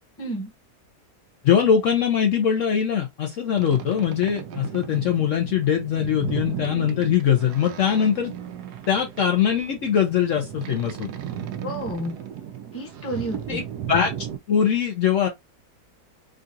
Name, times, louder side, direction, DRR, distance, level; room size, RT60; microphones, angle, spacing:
voice 1, 0.2-0.5 11.6-12.2 12.7-13.6, right 1 dB, 10° left, 0.8 m, -31 dB
voice 2, 1.4-8.3 8.9-11.1 13.5-13.6 13.9-14.1 14.5-15.3, left 8 dB, 65° left, 0.9 m, -22 dB
Boat Water vehicle, 3.5-14.4, right 9 dB, 85° right, 1.1 m, -35 dB
3.8 x 2.4 x 2.6 m
omnidirectional pair, 1.6 m